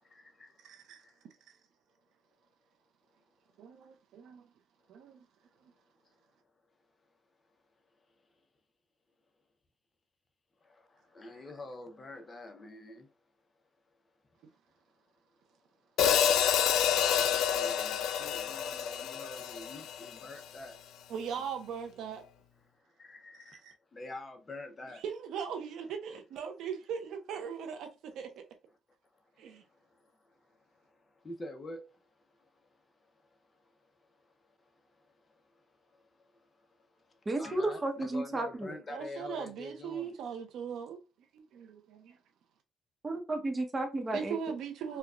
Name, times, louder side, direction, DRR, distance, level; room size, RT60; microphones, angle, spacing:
voice 1, 0.0-0.6 1.0-1.1 10.6-13.1 17.2-20.8 23.0-25.0 29.4-32.0 32.4-32.5 33.0-33.1 34.5-35.1 35.5-36.5 36.8-36.9 37.4-40.1, left 2 dB, 30° left, 0.8 m, -47 dB
voice 2, 0.6-1.0 3.6-4.5 4.9-5.2 21.1-22.2 23.3-23.7 25.0-28.5 29.4-29.6 38.9-41.0 41.3-42.2 44.1-45.0, right 7 dB, 85° right, 0.8 m, -39 dB
Hi-hat, 16.0-20.3, left 8 dB, 80° left, 0.4 m, -28 dB
voice 3, 37.3-38.7 43.0-44.4, right 2 dB, 25° right, 0.9 m, -33 dB
4.5 x 2.3 x 2.3 m
cardioid pair, 90°, 0 cm